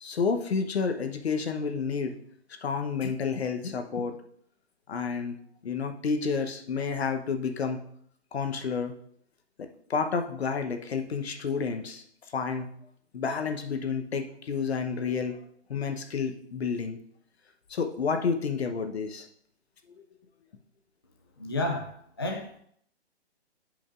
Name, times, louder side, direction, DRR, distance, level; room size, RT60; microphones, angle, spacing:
voice 1, 0.0-2.1 2.6-4.1 4.9-5.4 5.6-7.8 8.3-8.9 9.6-12.0 12.3-12.7 13.1-15.4 15.7-17.0 17.7-19.3, left 5 dB, 65° left, 6 dB, 1.0 m, -30 dB
voice 2, 21.4-22.5, left 2 dB, 25° left, 2 dB, 0.3 m, -31 dB
10.5 x 5.3 x 2.5 m, 0.66 s
hypercardioid pair, 155°, 34 cm